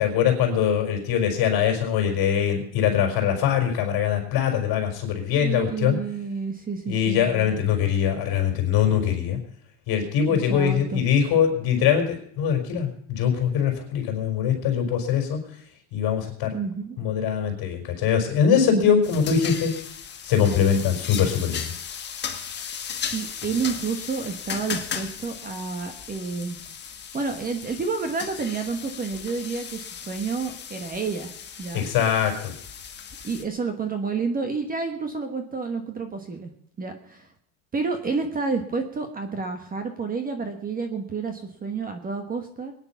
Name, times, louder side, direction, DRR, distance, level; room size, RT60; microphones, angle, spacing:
voice 1, 0.0-6.0 6.9-9.4 9.9-15.4 15.9-16.5 17.0-19.7 20.2-21.7 31.7-32.5, left 8 dB, 50° left, 3 dB, 4.6 m, -22 dB
voice 2, 5.4-7.5 10.3-11.0 16.5-17.0 23.1-26.6 27.1-31.3 31.6-31.9 33.2-36.5 36.8-37.3 37.7-42.7, right 4 dB, 20° right, 6 dB, 1.3 m, -30 dB
sound 1, 19.0-33.4, left 7 dB, 20° left, 1.4 m, -36 dB
21.5 x 9.9 x 5.8 m, 0.67 s
cardioid pair, 170°, 47 cm